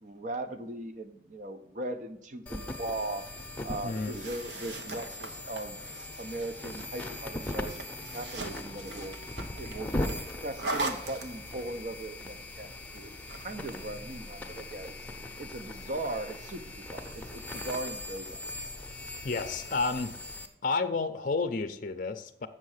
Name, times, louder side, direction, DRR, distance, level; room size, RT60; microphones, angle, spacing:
voice 1, 0.0-3.3 3.6-5.8 6.2-7.8 8.1-9.2 9.6-10.0 10.4-14.9 15.4-18.4, right 2 dB, 45° right, 10 dB, 0.6 m, -39 dB
sound 1, 2.5-20.5, left 1 dB, 10° left, 0.8 m, -40 dB
sound 2, 3.9-11.8 13.0-13.8, right 2 dB, 85° right, 1.1 m, -40 dB
voice 2, 19.2-20.1 20.6-22.5, left 4 dB, 45° left, 10 dB, 0.5 m, -31 dB
7.5 x 6.4 x 6.4 m, 0.72 s
head